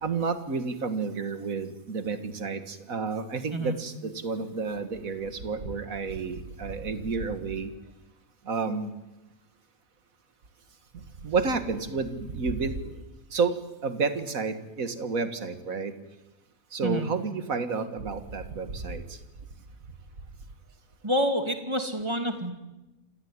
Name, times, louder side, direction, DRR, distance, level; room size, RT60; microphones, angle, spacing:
voice 1, 0.0-7.7 8.5-8.9 11.2-12.9 13.3-13.5 13.8-15.9 16.7-19.0, right 4 dB, 70° right, 10 dB, 2.2 m, -30 dB
voice 2, 21.0-22.5, equal, 20° right, 6 dB, 2.6 m, -27 dB
27.0 x 17.0 x 9.6 m, 1.0 s
omnidirectional pair, 1.5 m